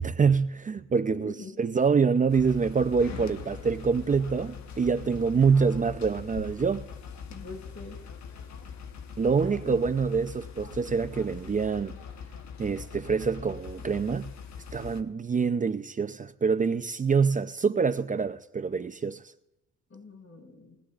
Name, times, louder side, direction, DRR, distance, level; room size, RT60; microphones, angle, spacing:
voice 1, 0.0-6.9 9.2-12.0 12.6-14.3 14.7-19.2, right 5 dB, 25° right, 0.6 m, -26 dB
voice 2, 1.1-1.6 7.3-8.0 9.4-9.8 19.9-20.8, left 3 dB, 45° left, 6.2 m, -44 dB
sound 1, 2.3-15.0, left 6 dB, 65° left, 1.1 m, -42 dB
21.5 x 17.0 x 2.5 m
cardioid pair, 90°, 30 cm